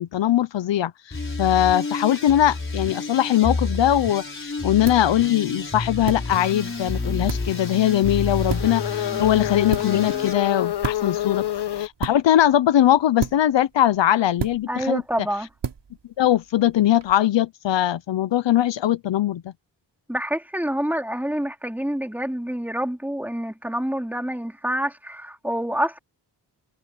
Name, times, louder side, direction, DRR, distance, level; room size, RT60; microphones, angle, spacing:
voice 1, 0.0-11.5 11.8-15.0 16.2-19.5, left 12 dB, 85° left, 0.8 m, -21 dB
sound 1, 1.1-10.3, left 3 dB, 30° left, 5.1 m, -30 dB
sound 2, 3.7-17.1, right 6 dB, 70° right, 4.2 m, -36 dB
sound 3, 6.3-11.9, left 12 dB, 65° left, 1.7 m, -29 dB
voice 2, 14.7-15.5 20.1-26.0, equal, 5° right, 4.1 m, -27 dB
wide cardioid pair, 125°, 43 cm